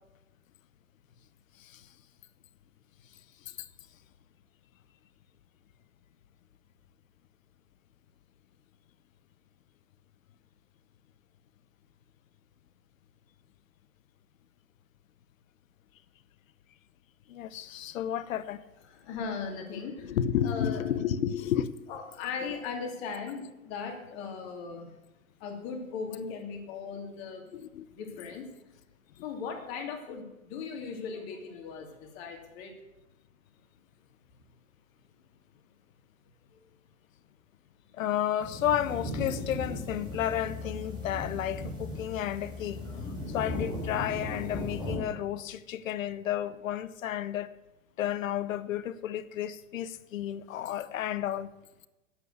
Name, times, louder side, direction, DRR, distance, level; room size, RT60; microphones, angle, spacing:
voice 1, 17.3-18.6 19.7-21.7 27.5-27.9 37.9-42.8 43.3-47.5 48.0-51.5, left 10 dB, 75° left, 0.9 m, -32 dB
voice 2, 18.9-20.2 20.4-20.8 21.9-24.9 25.4-27.5 27.9-28.5 29.2-32.7 36.5-36.6, left 5 dB, 50° left, 2.8 m, -38 dB
sound 1, 38.4-45.0, left 2 dB, 10° right, 5.0 m, -37 dB
9.5 x 8.4 x 7.9 m
hypercardioid pair, 115°, 41 cm